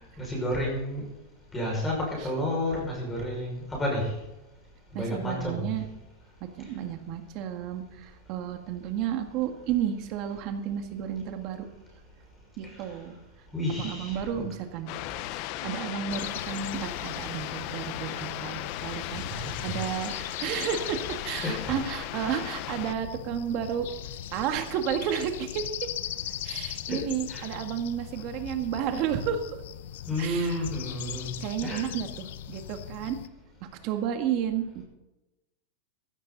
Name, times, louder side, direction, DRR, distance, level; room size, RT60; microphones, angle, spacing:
voice 1, 0.2-1.0 1.5-4.1 4.9-5.7 13.5-14.4 19.1-19.7 20.1-20.3 21.4-21.8 22.3-22.4 26.9-27.0 27.3-27.4 30.1-31.4 31.6-31.9, left 1 dB, 10° left, -2 dB, 5.9 m, -31 dB
voice 2, 4.9-5.8 6.4-11.7 12.6-13.2 13.7-14.9 15.6-23.9 24.3-25.7 26.4-29.4 30.2-30.6 31.4-33.2 33.8-34.8, right 9 dB, 40° right, 6 dB, 1.8 m, -32 dB
sound 1, 14.9-22.9, left 15 dB, 40° left, 0.6 m, -36 dB
sound 2, 16.1-33.3, left 12 dB, 70° left, 0.9 m, -40 dB
16.0 x 12.5 x 4.1 m, 0.98 s
supercardioid pair, 170°, 0 cm